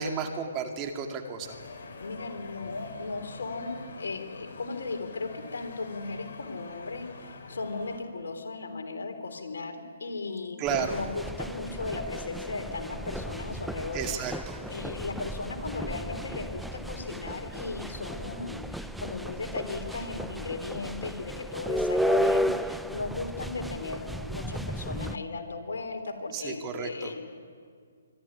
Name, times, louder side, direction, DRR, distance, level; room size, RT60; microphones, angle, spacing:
voice 1, 0.0-1.5 10.6-11.0 13.9-14.6 26.3-27.1, right 6 dB, 25° right, 4 dB, 2.3 m, -32 dB
sound 1, 1.4-8.0, left 4 dB, 55° left, 4.6 m, -45 dB
voice 2, 2.0-14.1 14.7-27.3, left 3 dB, 75° left, 5 dB, 3.5 m, -36 dB
sound 2, 10.7-25.2, equal, ahead, 0.6 m, -34 dB
25.5 x 12.0 x 9.9 m, 2.1 s
hypercardioid pair, 140°, 0 cm